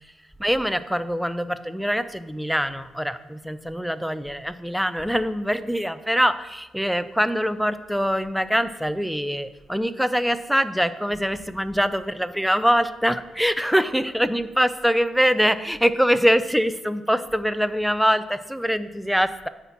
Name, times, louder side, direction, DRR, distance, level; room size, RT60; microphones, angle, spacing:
voice 1, 0.4-19.5, equal, ahead, 11 dB, 0.6 m, -23 dB
10.5 x 4.3 x 7.4 m, 1.1 s
cardioid pair, 90°, 0 cm